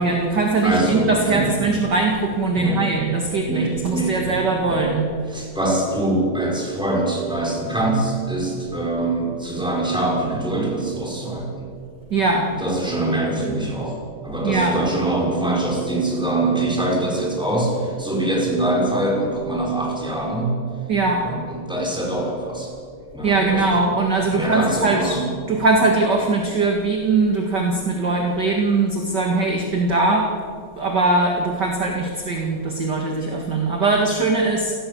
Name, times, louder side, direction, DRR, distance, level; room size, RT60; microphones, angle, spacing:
voice 1, 0.0-5.1 12.1-12.5 14.4-14.7 20.9-21.2 23.2-25.2 25.5-30.3 30.7-34.7, right 3 dB, 35° right, 1 dB, 2.1 m, -20 dB
voice 2, 0.6-1.5 2.6-2.8 3.5-4.4 4.7-4.9 5.3-11.5 12.5-14.0 14.2-20.6 21.2-22.7 23.1-23.6 24.3-25.3, right 2 dB, ahead, -2 dB, 5.6 m, -23 dB
29.5 x 19.0 x 7.2 m, 2.3 s
omnidirectional pair, 4.2 m